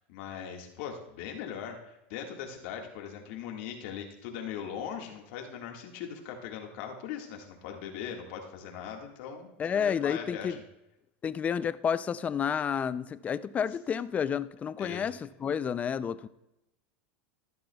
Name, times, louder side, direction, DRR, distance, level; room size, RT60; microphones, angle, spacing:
voice 1, 0.0-10.6 14.8-15.1, left 8 dB, 65° left, 1.8 m, -40 dB
voice 2, 9.6-10.6 11.2-16.3, left 7 dB, 20° left, 0.4 m, -30 dB
15.0 x 11.5 x 2.3 m
supercardioid pair, 125°, 6 cm